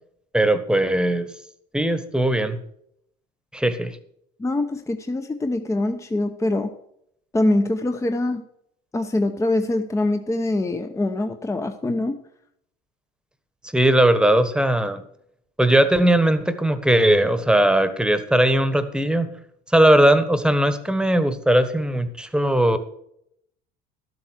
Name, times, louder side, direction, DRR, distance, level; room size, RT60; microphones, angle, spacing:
voice 1, 0.3-1.3 1.7-2.6 3.5-4.0 13.7-15.0 15.6-19.3 19.7-22.8, right 1 dB, 5° right, 11 dB, 1.3 m, -19 dB
voice 2, 4.4-6.7 7.3-8.4 8.9-12.2, left 2 dB, 15° left, 7 dB, 0.9 m, -24 dB
12.0 x 7.9 x 6.3 m, 0.73 s
supercardioid pair, 90°, 21 cm